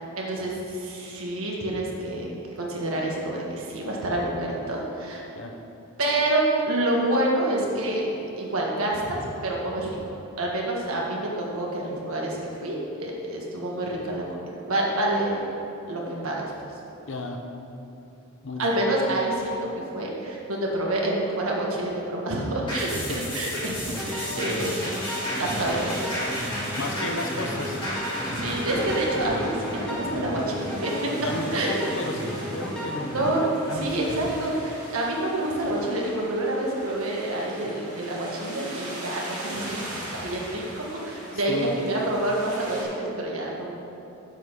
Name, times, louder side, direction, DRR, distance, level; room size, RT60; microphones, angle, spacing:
voice 1, 0.2-2.3 2.6-5.2 6.0-8.1 8.4-10.0 10.4-15.4 15.9-16.4 18.6-24.8 25.4-25.9 28.3-31.1 31.5-31.8 33.1-43.8, right 1 dB, 75° right, -2 dB, 1.6 m, -27 dB
voice 2, 17.1-17.5 18.4-18.7 23.1-23.3 24.6-24.7 26.8-27.8 31.2-34.0 41.3-41.8, left 1 dB, 60° left, 4 dB, 0.8 m, -33 dB
sound 1, 22.7-31.4 31.8-31.9, left 1 dB, 20° left, 2.2 m, -34 dB
sound 2, 23.4-42.8, right 1 dB, 35° right, 2.3 m, -40 dB
sound 3, 23.8-33.4, equal, 5° left, 1.2 m, -34 dB
7.4 x 5.9 x 6.7 m, 2.9 s
head